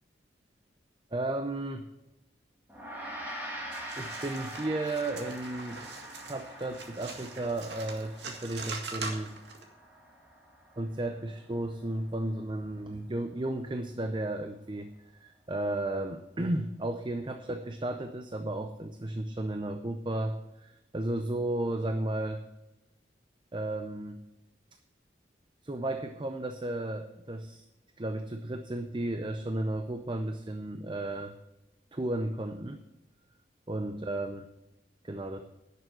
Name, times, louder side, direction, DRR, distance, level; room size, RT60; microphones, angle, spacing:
voice 1, 1.1-1.9 3.3-3.4 3.9-5.8 6.2-9.4 10.8-14.9 15.2-22.4 23.5-24.2 25.6-27.7 28.0-31.3 31.9-32.8 33.7-34.4 35.0-35.4, right 1 dB, 25° right, 7 dB, 0.6 m, -34 dB
Gong, 2.7-12.2, equal, 10° right, 2.4 m, -44 dB
sound 1, 3.7-9.6, right 4 dB, 75° right, 2.0 m, -42 dB
11.0 x 6.7 x 7.6 m, 0.96 s
head